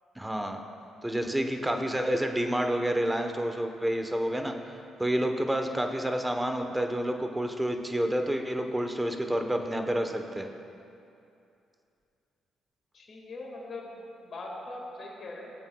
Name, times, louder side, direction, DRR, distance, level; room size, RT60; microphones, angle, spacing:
voice 1, 0.2-0.6 1.0-10.5, right 1 dB, 10° right, 5 dB, 1.0 m, -29 dB
voice 2, 12.9-14.0 14.2-15.5, left 2 dB, 50° left, -2 dB, 1.9 m, -41 dB
19.0 x 8.0 x 2.3 m, 2.6 s
supercardioid pair, 60°, 0 cm